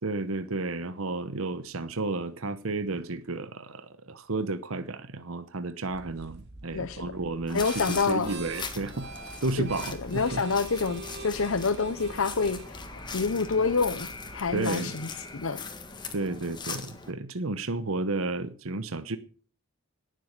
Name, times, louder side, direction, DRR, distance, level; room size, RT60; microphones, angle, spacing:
voice 1, 0.0-9.1 9.4-10.4 14.5-15.0 16.1-19.2, right 2 dB, 70° right, 1.0 m, -32 dB
sound 1, 5.9-14.7, right 2 dB, 50° right, 2.1 m, -44 dB
voice 2, 6.7-7.1 7.5-8.3 9.6-9.7 10.1-15.6, left 4 dB, 70° left, 0.8 m, -28 dB
sound 2, 7.5-17.1, left 4 dB, 20° left, 1.6 m, -40 dB
18.0 x 7.6 x 6.7 m
head